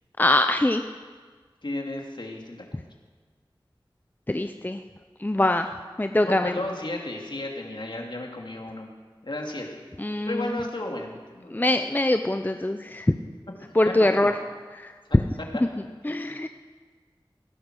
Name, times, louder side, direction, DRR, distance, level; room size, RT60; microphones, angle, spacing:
voice 1, 0.2-0.8 4.3-4.8 5.2-5.7 6.0-6.5 10.0-10.4 11.5-13.1 13.8-14.3 16.0-16.5, left 1 dB, 20° left, 7 dB, 0.6 m, -23 dB
voice 2, 1.6-2.6 6.2-8.9 9.2-9.7 10.3-11.5 13.9-14.4 15.7-15.8 16.1-16.4, left 1 dB, 60° left, 1 dB, 2.3 m, -33 dB
17.0 x 10.5 x 6.3 m, 1.5 s
wide cardioid pair, 40°, 9 cm